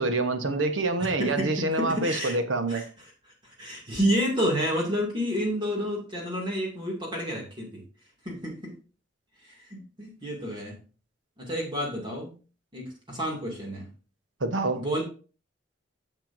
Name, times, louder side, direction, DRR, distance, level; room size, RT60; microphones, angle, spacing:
voice 1, 0.0-2.8 14.4-14.8, right 2 dB, 80° right, 1.1 m, -26 dB
voice 2, 1.0-2.4 2.7-2.9 3.6-7.8 8.2-8.7 9.4-10.8 11.4-12.3 12.7-13.9 14.7-15.0, equal, 25° right, 2.4 m, -30 dB
10.5 x 6.8 x 2.6 m
head